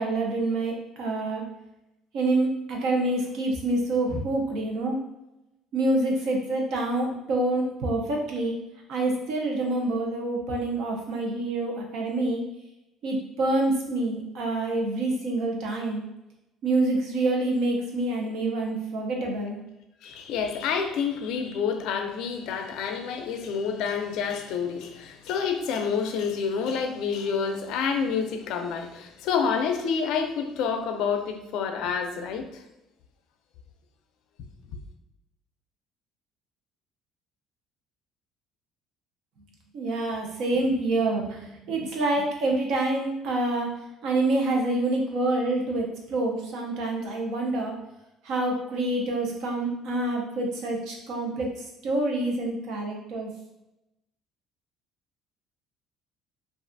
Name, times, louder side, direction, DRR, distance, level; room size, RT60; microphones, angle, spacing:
voice 1, 0.0-1.4 2.1-5.0 5.7-8.6 8.9-12.4 13.0-16.0 16.6-19.6 39.7-43.7 44.0-47.7 48.2-51.5 51.8-53.3, right 2 dB, 60° right, 0 dB, 0.7 m, -27 dB
voice 2, 20.0-32.6 34.7-34.8, left 6 dB, 70° left, 5 dB, 0.4 m, -28 dB
3.2 x 2.4 x 2.5 m, 0.92 s
cardioid pair, 160°, 0 cm